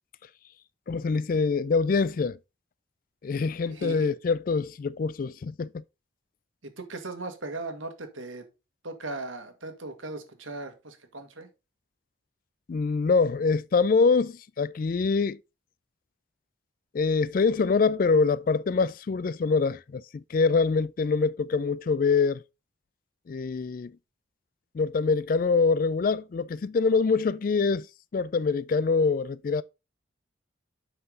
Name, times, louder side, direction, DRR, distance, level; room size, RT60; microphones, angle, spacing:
voice 1, 0.9-2.4 3.2-5.7 12.7-15.4 16.9-22.4 23.3-23.9 24.7-27.9 28.1-29.6, left 4 dB, 45° left, 0.3 m, -24 dB
voice 2, 3.6-4.1 6.6-8.5 8.8-11.5, right 2 dB, 80° right, 1.7 m, -38 dB
7.8 x 5.8 x 3.8 m
head